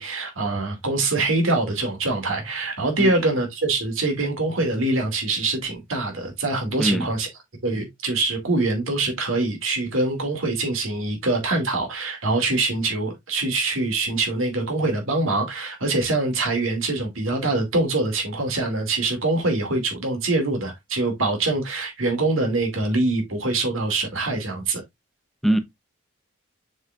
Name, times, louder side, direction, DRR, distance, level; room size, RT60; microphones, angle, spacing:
voice 1, 0.0-7.3 7.6-24.8, right 2 dB, 90° right, 2.4 m, -24 dB
voice 2, 6.8-7.1 25.4-25.6, right 1 dB, ahead, 0.7 m, -22 dB
7.1 x 5.5 x 2.5 m
head